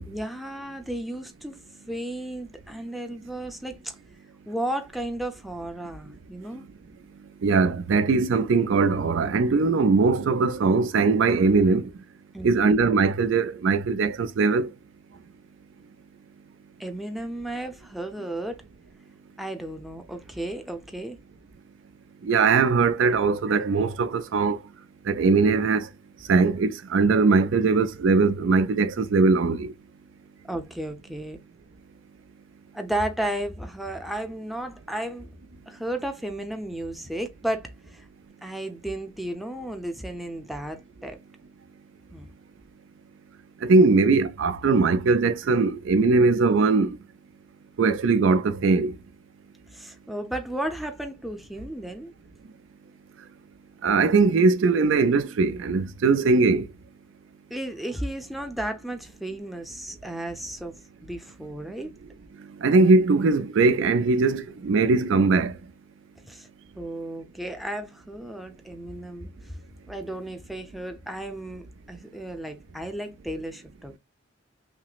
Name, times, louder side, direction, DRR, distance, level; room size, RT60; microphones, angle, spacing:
voice 1, 0.1-1.6 1.9-3.9 4.5-6.6 12.3-12.7 16.8-18.6 19.4-21.2 30.5-31.4 32.7-35.4 35.7-38.1 38.4-41.2 42.1-42.3 49.7-52.1 57.5-60.8 61.0-61.9 66.2-66.5 66.8-69.5 69.9-74.0, right 1 dB, ahead, 0.6 m, -34 dB
voice 2, 7.4-11.9 12.4-14.7 22.2-24.6 25.1-25.9 26.3-29.7 43.6-47.0 47.8-48.9 53.8-56.7 62.6-65.5, right 4 dB, 65° right, 0.4 m, -20 dB
5.8 x 2.0 x 2.4 m
head